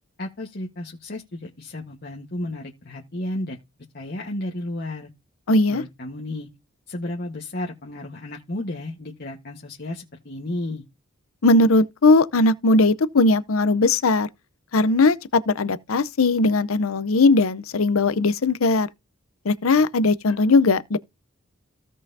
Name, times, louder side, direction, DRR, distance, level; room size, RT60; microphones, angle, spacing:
voice 1, 0.2-3.6 3.9-5.1 5.7-6.5 6.9-10.8, left 1 dB, 50° left, 1.3 m, -33 dB
voice 2, 5.5-5.8 11.4-14.3 14.7-18.9 19.4-21.0, left 3 dB, 85° left, 0.7 m, -19 dB
16.0 x 5.6 x 2.7 m
head